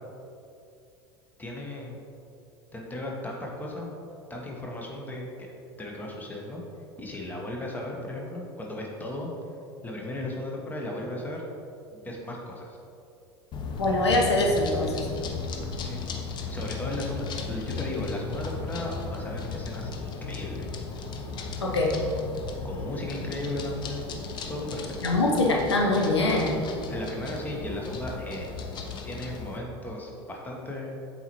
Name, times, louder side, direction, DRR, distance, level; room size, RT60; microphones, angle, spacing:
voice 1, 1.4-2.0 2.7-3.9 4.3-5.5 5.8-6.6 7.0-9.3 9.8-11.4 11.9-12.8 15.8-20.7 22.6-24.1 24.5-24.9 26.9-28.5 29.0-31.0, left 1 dB, 10° left, -1 dB, 1.1 m, -36 dB
sound 1, 13.5-29.6, left 4 dB, 30° left, 0.6 m, -36 dB
voice 2, 13.8-15.1 21.6-21.9 25.0-26.7, left 2 dB, 75° left, 0 dB, 0.7 m, -23 dB
7.9 x 4.2 x 3.0 m, 2.6 s
figure-of-eight pair, 75°, 14 cm